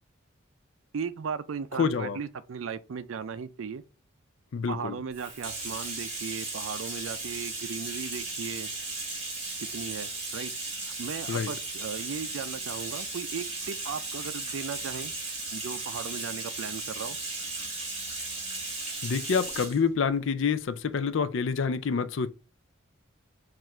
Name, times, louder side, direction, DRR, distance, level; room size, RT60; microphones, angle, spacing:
voice 1, 0.9-3.8 4.7-8.7 9.7-10.5 10.8-15.1 15.5-17.2, right 6 dB, 80° right, 0.4 m, -37 dB
voice 2, 1.8-2.2 4.5-5.0 11.3-11.5 19.0-22.3, left 5 dB, 65° left, 0.4 m, -27 dB
Bathtub (filling or washing), 5.1-19.8, right 3 dB, 30° right, 1.8 m, -36 dB
4.4 x 2.5 x 4.3 m
head